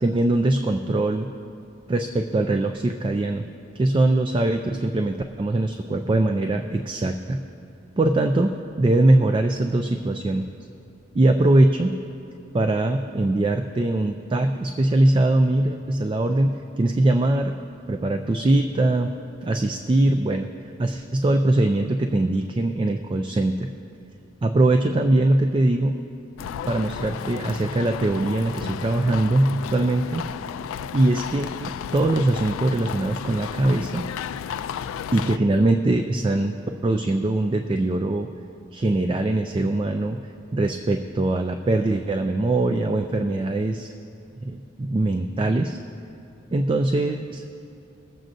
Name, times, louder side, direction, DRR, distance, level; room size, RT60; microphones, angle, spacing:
voice 1, 0.0-1.3 1.9-3.5 3.8-7.4 8.0-10.5 11.1-12.0 12.5-17.5 17.9-19.1 19.4-20.5 20.8-23.7 24.4-26.0 26.7-30.3 30.9-34.0 35.1-36.5 36.8-38.3 38.7-40.2 40.5-43.9 44.4-45.8 46.5-47.4, right 2 dB, 25° right, 6 dB, 0.3 m, -22 dB
sound 1, 26.4-35.4, left 8 dB, 90° left, 0.3 m, -33 dB
22.0 x 7.6 x 2.6 m, 2.7 s
head